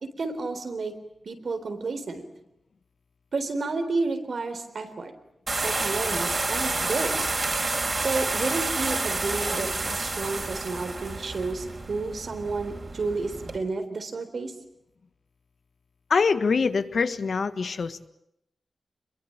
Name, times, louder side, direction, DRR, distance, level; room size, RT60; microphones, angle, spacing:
voice 1, 0.0-0.9 1.3-2.2 3.3-5.1 5.6-7.2 8.0-14.5, right 3 dB, 70° right, 7 dB, 3.9 m, -31 dB
sound 1, 5.5-13.6, right 3 dB, 45° right, 4.5 m, -29 dB
voice 2, 16.1-18.1, left 5 dB, 75° left, 11 dB, 1.4 m, -24 dB
26.0 x 22.5 x 8.8 m, 0.79 s
wide cardioid pair, 95°, 0 cm